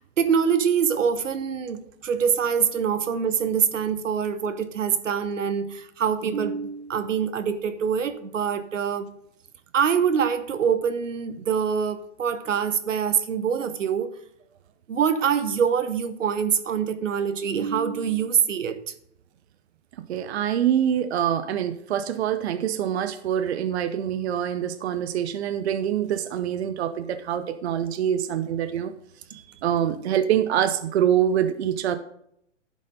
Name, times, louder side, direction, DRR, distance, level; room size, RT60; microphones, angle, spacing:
voice 1, 0.0-9.1 9.7-14.1 14.9-18.8, right 7 dB, 85° right, 11 dB, 1.1 m, -24 dB
voice 2, 20.1-28.9 29.3-32.0, right 10 dB, 60° right, 10 dB, 0.8 m, -25 dB
11.5 x 5.3 x 5.3 m, 0.73 s
hypercardioid pair, 135°, 37 cm